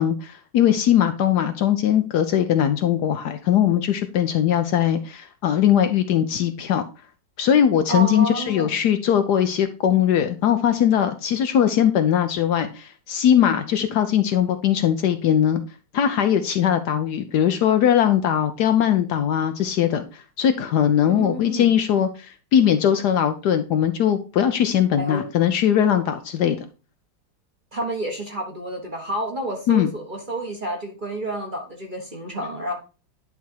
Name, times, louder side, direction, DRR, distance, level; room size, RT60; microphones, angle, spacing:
voice 1, 0.0-6.8 7.4-15.6 15.9-26.6 29.7-29.9, left 9 dB, 70° left, 8 dB, 1.1 m, -20 dB
voice 2, 7.9-8.7 21.0-21.7 25.0-25.2 27.7-32.7, right 1 dB, 30° right, 1 dB, 1.1 m, -29 dB
10.5 x 3.5 x 4.3 m, 0.33 s
omnidirectional pair, 2.0 m